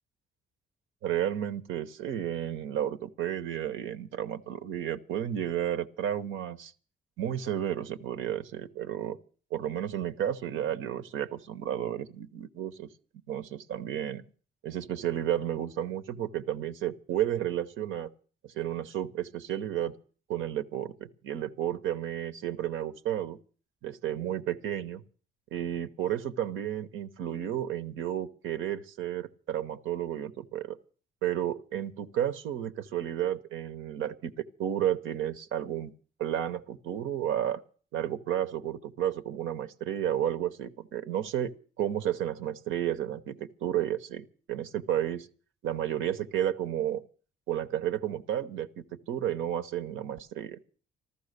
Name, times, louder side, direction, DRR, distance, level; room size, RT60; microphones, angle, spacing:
voice 1, 1.0-6.7 7.2-9.2 9.5-12.9 13.3-14.2 14.6-18.1 18.4-19.9 20.3-23.4 23.8-25.0 25.5-30.8 31.2-35.9 36.2-37.6 37.9-41.5 41.8-45.3 45.6-47.0 47.5-50.6, right 11 dB, 80° right, 1.0 m, -32 dB
14.0 x 13.0 x 6.7 m
cardioid pair, 90°, 20 cm